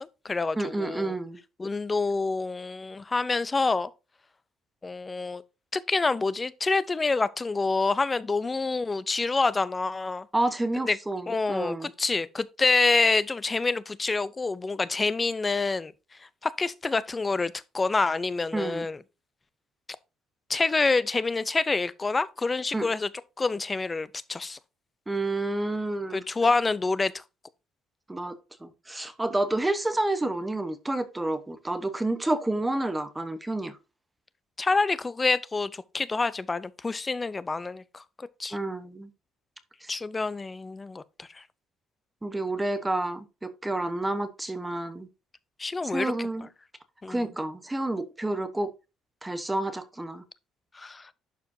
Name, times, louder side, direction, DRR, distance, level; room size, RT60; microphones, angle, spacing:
voice 1, 0.0-1.2 1.6-3.9 4.8-5.4 5.7-10.3 10.9-11.0 11.3-15.9 16.4-19.0 20.5-23.1 23.4-24.6 26.1-27.2 34.6-38.6 39.9-41.4 45.6-46.3 47.0-47.3 50.7-51.1, left 3 dB, 15° left, 0.5 m, -27 dB
voice 2, 0.6-1.4 10.3-11.9 18.5-18.9 22.7-22.9 25.1-26.2 28.1-28.3 28.6-33.8 38.5-39.1 39.8-39.9 42.2-45.1 45.8-46.5 47.1-48.7 49.2-50.2, right 2 dB, 10° right, 0.9 m, -29 dB
11.0 x 4.8 x 2.7 m
cardioid pair, 145°, 0 cm